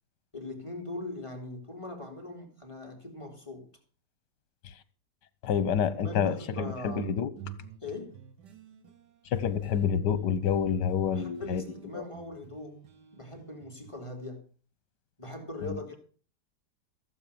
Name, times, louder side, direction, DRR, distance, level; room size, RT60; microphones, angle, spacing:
voice 1, 0.3-3.7 5.9-7.1 7.8-8.2 11.1-12.8 13.1-14.4 15.2-16.0, left 2 dB, 15° left, 3.2 m, -41 dB
voice 2, 5.4-7.3 9.3-11.6 11.9-12.0 15.6-15.8, left 8 dB, 80° left, 1.5 m, -28 dB
sound 1, 6.5-11.1 11.4-13.9, right 9 dB, 85° right, 2.0 m, -47 dB
15.5 x 8.0 x 6.9 m
omnidirectional pair, 1.8 m